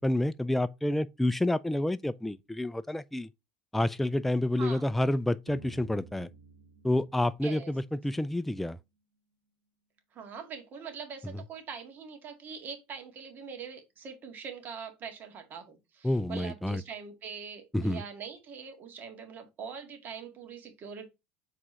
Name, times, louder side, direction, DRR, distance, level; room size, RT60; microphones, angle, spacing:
voice 1, 0.0-3.3 3.7-6.3 6.8-8.8 16.0-16.8 17.7-18.0, left 1 dB, 5° left, 0.3 m, -29 dB
voice 2, 4.5-4.9 7.4-7.7 10.1-21.1, right 6 dB, 40° right, 2.0 m, -43 dB
sound 1, 5.5-8.7, right 3 dB, 90° right, 2.0 m, -53 dB
4.9 x 3.6 x 5.4 m
supercardioid pair, 100°, 5 cm